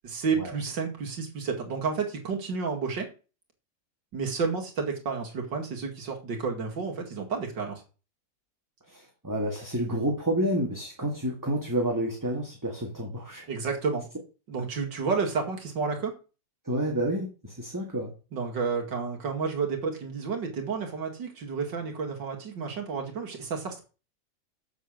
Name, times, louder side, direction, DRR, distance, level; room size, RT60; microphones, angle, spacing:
voice 1, 0.0-3.1 4.1-7.8 13.5-14.1 14.5-16.1 18.3-23.8, right 5 dB, 85° right, 1 dB, 2.9 m, -31 dB
voice 2, 8.9-13.5 16.6-18.1, right 1 dB, 10° right, 0 dB, 1.7 m, -29 dB
7.5 x 7.2 x 6.5 m, 0.34 s
omnidirectional pair, 1.9 m